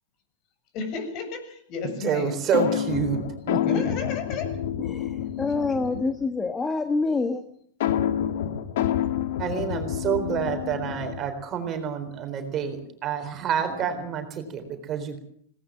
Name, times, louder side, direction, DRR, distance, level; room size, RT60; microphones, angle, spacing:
voice 1, 0.7-2.3 3.6-4.5, left 4 dB, 40° left, 7 dB, 7.6 m, -32 dB
voice 2, 2.0-3.2 3.5-3.8 9.4-15.2, right 7 dB, 30° right, 7 dB, 4.1 m, -28 dB
sound 1, 2.5-6.3 7.8-11.4, left 10 dB, 65° left, 2.1 m, -28 dB
voice 3, 4.8-7.4, left 3 dB, 10° left, 8 dB, 1.5 m, -27 dB
20.5 x 18.5 x 7.7 m, 0.64 s
supercardioid pair, 145°, 0 cm